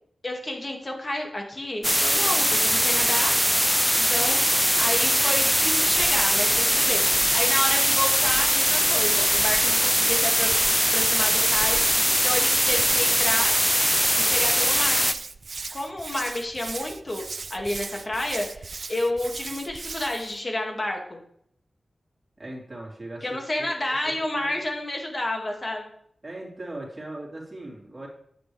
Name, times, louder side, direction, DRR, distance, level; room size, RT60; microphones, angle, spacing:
voice 1, 0.2-3.4 4.1-10.5 10.9-13.5 14.3-15.1 15.7-17.2 17.5-21.2 23.2-25.9, left 1 dB, 35° left, 1 dB, 2.2 m, -30 dB
sound 1, 1.8-15.1, equal, ahead, 0.4 m, -21 dB
Hands, 5.0-20.4, right 4 dB, 60° right, 0.4 m, -39 dB
voice 2, 22.4-24.6 26.2-28.1, right 1 dB, 30° right, -3 dB, 3.5 m, -39 dB
9.8 x 8.8 x 3.4 m, 0.68 s
wide cardioid pair, 85°, 0 cm